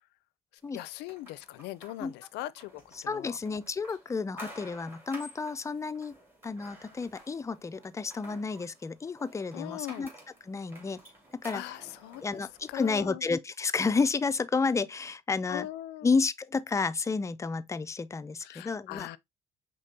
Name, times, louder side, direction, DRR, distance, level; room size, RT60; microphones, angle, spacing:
voice 1, 0.7-3.4 9.5-10.1 11.5-12.2 12.7-13.2 15.5-16.1 18.4-19.2, left 16 dB, 90° left, 0.4 m, -40 dB
sound 1, 0.7-13.0, equal, 15° right, 2.4 m, -51 dB
voice 2, 2.9-6.2 6.4-10.1 10.4-11.0 11.4-11.6 12.2-15.7 16.0-19.2, left 4 dB, 20° left, 0.4 m, -31 dB
5.1 x 3.7 x 2.7 m
cardioid pair, 110°, 17 cm